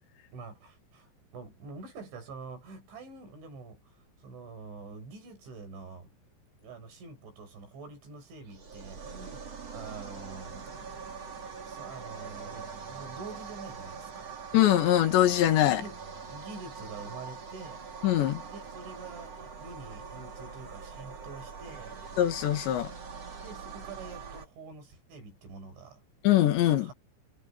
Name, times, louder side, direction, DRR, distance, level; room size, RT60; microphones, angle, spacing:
voice 1, 0.3-6.1 6.6-9.4 9.7-10.7 11.6-14.3 15.7-16.0 16.3-17.9 18.4-22.0 23.4-26.0 26.8-26.9, right 4 dB, 85° right, 8.3 m, -46 dB
sound 1, 8.5-24.5, right 5 dB, 35° right, 3.8 m, -43 dB
voice 2, 14.5-15.8 18.0-18.4 22.2-22.9 26.2-26.9, left 13 dB, 75° left, 4.1 m, -23 dB
omnidirectional pair, 5.2 m